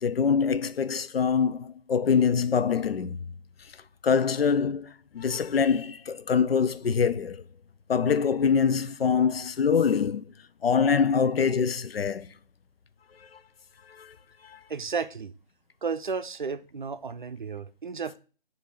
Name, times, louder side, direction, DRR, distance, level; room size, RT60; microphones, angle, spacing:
voice 1, 0.0-3.2 4.0-7.4 7.9-10.2 10.6-12.3 13.3-13.4 13.9-14.1 14.4-14.6, left 6 dB, 75° left, 0.6 m, -24 dB
voice 2, 14.7-15.3 15.8-18.2, right 5 dB, 55° right, 0.5 m, -33 dB
6.9 x 2.7 x 5.8 m
hypercardioid pair, 175°, 30 cm